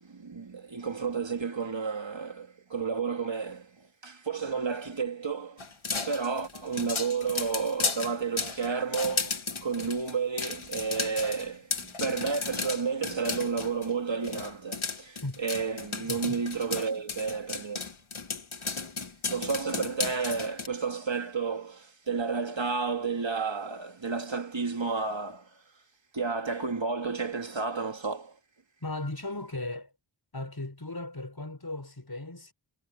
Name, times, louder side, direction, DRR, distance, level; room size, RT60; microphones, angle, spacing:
voice 1, 0.0-5.6 6.0-17.8 19.3-25.5 26.1-28.4, right 5 dB, 70° right, 2.3 m, -31 dB
sound 1, 5.6-13.9 14.2-20.7, left 4 dB, 90° left, 2.0 m, -34 dB
voice 2, 16.0-16.4 28.8-29.9 30.3-32.5, left 2 dB, 50° left, 5.8 m, -37 dB
wide cardioid pair, 40°, 47 cm